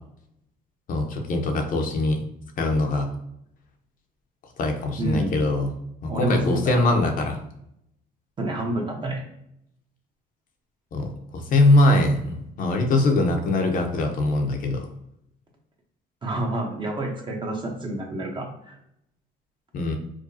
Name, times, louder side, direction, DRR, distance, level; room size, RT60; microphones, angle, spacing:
voice 1, 0.9-2.2 2.6-3.1 4.6-5.7 6.0-7.4 10.9-14.8 19.7-20.0, left 2 dB, 55° left, 3 dB, 0.7 m, -22 dB
voice 2, 5.0-5.5 6.1-7.0 8.4-9.2 16.2-18.8, right 1 dB, 30° right, 1 dB, 0.9 m, -28 dB
4.8 x 2.2 x 2.7 m, 0.76 s
cardioid pair, 110°, 17 cm